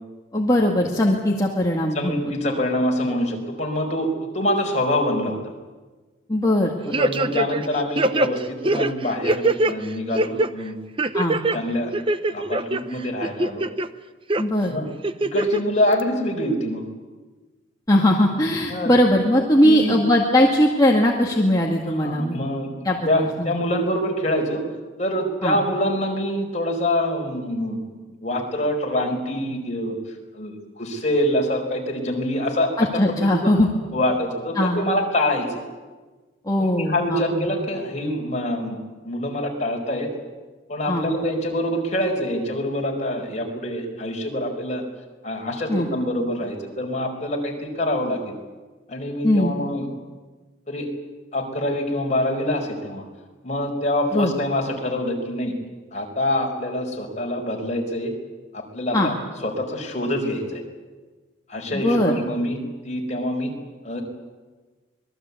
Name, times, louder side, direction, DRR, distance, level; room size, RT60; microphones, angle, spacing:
voice 1, 0.3-2.1 6.3-7.0 11.1-11.4 14.4-14.7 17.9-22.4 22.8-23.5 25.4-25.6 32.8-33.7 34.6-34.8 36.5-37.4 40.9-41.1 45.7-45.9 49.2-49.5 54.1-54.3 58.9-59.1 61.7-62.1, left 1 dB, 20° left, -2 dB, 2.1 m, -20 dB
voice 2, 1.9-5.4 7.0-10.8 11.5-11.9 12.3-13.6 14.7-14.8 15.2-16.8 18.7-18.9 19.6-20.0 21.9-22.7 23.0-24.6 25.0-27.8 28.2-30.0 30.3-32.9 33.2-33.5 33.9-35.6 36.6-38.8 39.0-40.1 40.7-44.8 45.2-48.4 48.9-49.9 50.7-50.9 51.3-53.0 53.4-55.5 55.9-58.1 58.5-59.1 59.4-60.6 61.5-62.6 62.8-63.5 63.8-64.0, left 1 dB, 35° left, 1 dB, 4.9 m, -25 dB
sound 1, 6.9-7.7 8.0-9.7 10.1-10.5 11.0-11.6 11.9-12.8 13.2-13.9 14.3-14.4 15.0-15.6 16.0-16.1, right 2 dB, 30° right, 0.8 m, -22 dB
26.0 x 20.5 x 8.4 m, 1.3 s
head